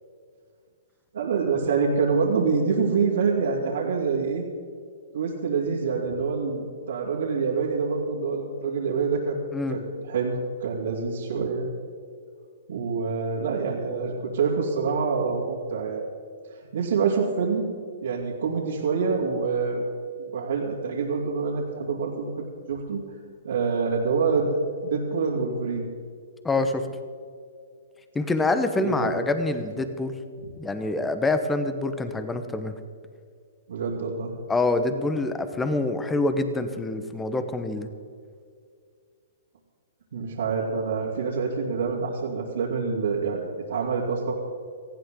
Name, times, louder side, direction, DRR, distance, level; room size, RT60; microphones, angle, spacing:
voice 1, 1.1-4.4 5.1-9.4 9.7-11.7 12.7-16.0 16.7-17.7 18.0-19.8 20.2-23.0 23.4-24.5 24.8-25.9 28.8-29.1 33.7-34.3 40.1-43.4 43.7-44.3, right 5 dB, 75° right, -6 dB, 3.1 m, -26 dB
voice 2, 26.4-26.9 28.1-30.1 30.6-32.7 34.5-37.9, left 2 dB, 10° left, 9 dB, 1.2 m, -26 dB
19.0 x 15.0 x 3.9 m, 2.2 s
hypercardioid pair, 140°, 0 cm